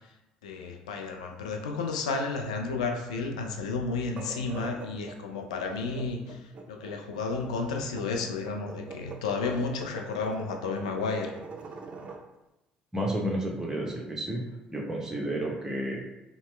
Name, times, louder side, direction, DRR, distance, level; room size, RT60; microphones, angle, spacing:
voice 1, 0.4-11.3, left 4 dB, 80° left, 3 dB, 0.4 m, -32 dB
sound 1, 4.0-12.2, right 4 dB, 40° right, 0.4 m, -43 dB
voice 2, 12.9-14.4 14.7-16.0, right 1 dB, 15° right, -2 dB, 0.7 m, -31 dB
2.8 x 2.0 x 3.2 m, 0.95 s
hypercardioid pair, 55°, 4 cm